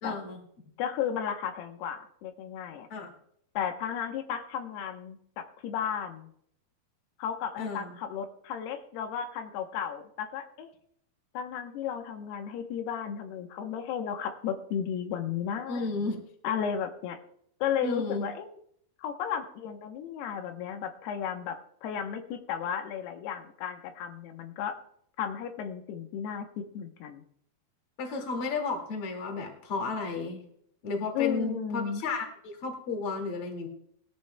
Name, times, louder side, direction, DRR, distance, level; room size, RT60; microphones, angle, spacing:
voice 1, 0.0-0.4 2.9-3.1 7.6-7.9 15.7-16.2 17.8-18.3 28.0-30.4 30.8-33.7, left 3 dB, 40° left, 3 dB, 2.7 m, -33 dB
voice 2, 0.8-2.9 3.5-6.3 7.2-10.7 11.3-15.9 16.4-17.2 17.6-18.6 19.0-24.7 25.2-27.2 31.1-32.0, left 8 dB, 90° left, 5 dB, 3.0 m, -34 dB
20.0 x 13.5 x 2.2 m, 0.68 s
omnidirectional pair, 4.5 m